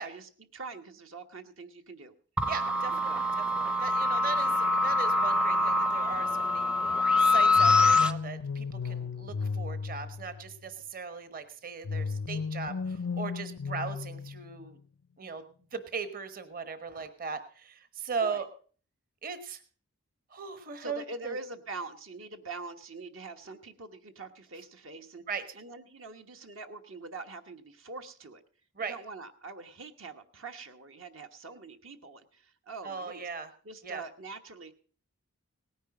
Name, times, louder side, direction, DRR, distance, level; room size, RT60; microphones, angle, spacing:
voice 1, 0.0-2.1 2.9-3.4 4.4-4.6 18.2-18.4 20.8-25.2 25.5-28.4 28.8-33.3 33.6-34.8, right 3 dB, 65° right, 7 dB, 1.2 m, -44 dB
sound 1, 2.4-8.1, left 2 dB, 5° right, 0.6 m, -25 dB
voice 2, 2.5-6.7 7.2-14.8 15.2-15.4 15.7-18.5 19.2-19.6 20.3-21.4 25.3-25.4 28.8-29.0 32.8-33.5 33.8-34.0, right 5 dB, 40° right, 10 dB, 1.2 m, -38 dB
sound 2, 7.6-10.7 11.8-14.8, left 5 dB, 85° left, 0.5 m, -35 dB
18.0 x 10.0 x 4.9 m, 0.41 s
head